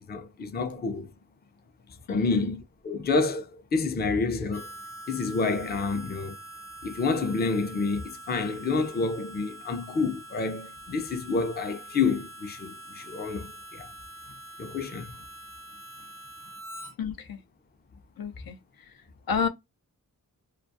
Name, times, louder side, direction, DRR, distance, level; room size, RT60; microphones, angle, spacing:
voice 1, 0.1-1.1 2.1-4.7 5.1-6.4 6.8-13.9 14.6-15.1, left 4 dB, 30° left, 0.4 m, -29 dB
voice 2, 2.1-2.4 17.0-17.4 18.2-18.9 19.3-19.5, left 6 dB, 90° left, 0.6 m, -31 dB
Harmonica, 4.5-16.9, right 2 dB, 45° left, 0.8 m, -44 dB
2.3 x 2.2 x 2.5 m
wide cardioid pair, 105°, 35 cm